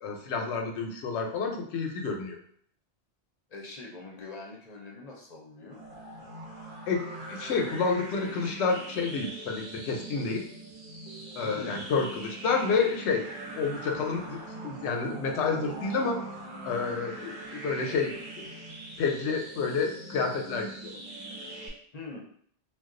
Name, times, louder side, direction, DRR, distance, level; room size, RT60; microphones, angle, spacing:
voice 1, 0.0-2.4 6.9-10.5 11.4-13.2 13.5-16.2 16.6-18.5 19.0-20.9, left 4 dB, 85° left, 2 dB, 0.9 m, -29 dB
voice 2, 3.5-5.8 11.4-11.9 21.9-22.2, left 3 dB, 50° left, -1 dB, 0.6 m, -43 dB
sound 1, 5.7-21.7, right 2 dB, 45° right, 0.8 m, -42 dB
2.3 x 2.3 x 3.7 m, 0.63 s
omnidirectional pair, 1.1 m